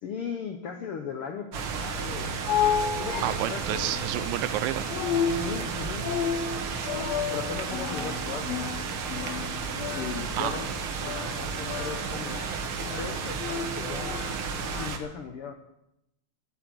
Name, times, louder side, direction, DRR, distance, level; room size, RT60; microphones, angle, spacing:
voice 1, 0.0-2.4 3.0-3.9 5.2-6.1 7.3-8.7 9.9-10.7 11.0-12.4 12.9-14.3 14.8-15.5, left 6 dB, 70° left, 5 dB, 1.3 m, -37 dB
sound 1, 1.5-15.0, right 5 dB, 60° right, 1.4 m, -33 dB
sound 2, 2.0-14.9, left 8 dB, 90° left, 1.4 m, -33 dB
voice 2, 3.2-5.2 10.4-10.5, right 14 dB, 85° right, 13 dB, 2.4 m, -30 dB
11.0 x 8.5 x 9.4 m, 0.84 s
omnidirectional pair, 4.0 m